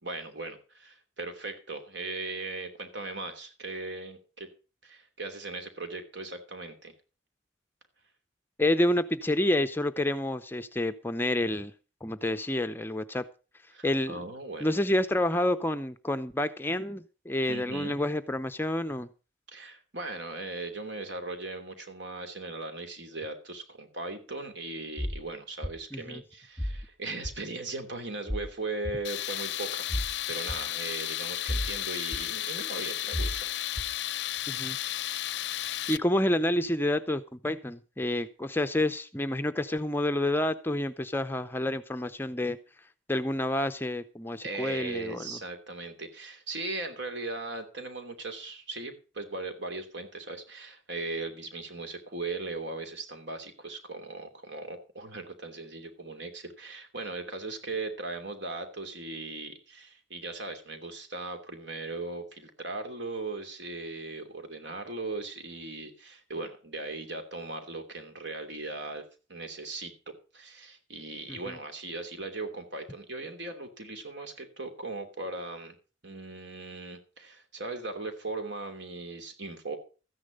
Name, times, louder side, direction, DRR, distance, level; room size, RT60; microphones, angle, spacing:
voice 1, 0.0-4.5 4.8-6.9 13.7-14.8 17.5-18.0 19.5-33.5 44.4-75.8 76.0-79.8, right 3 dB, 65° right, 6 dB, 2.9 m, -38 dB
voice 2, 8.6-11.7 12.0-13.2 13.8-14.2 14.6-19.1 25.9-26.2 34.5-34.8 35.9-42.6 43.1-45.4 71.3-71.6, left 1 dB, 10° left, 9 dB, 0.6 m, -29 dB
sound 1, 25.0-25.2 25.6-25.7 26.6-26.8 27.2-27.4 28.3-28.5 28.8-28.9 29.9-30.1 30.5-30.6 31.5-31.8 32.1-32.2 33.1-33.4 33.8-33.9, equal, 5° right, 2.0 m, -32 dB
Tools, 29.0-36.0, left 13 dB, 60° left, 0.5 m, -33 dB
14.0 x 10.0 x 5.1 m, 0.35 s
head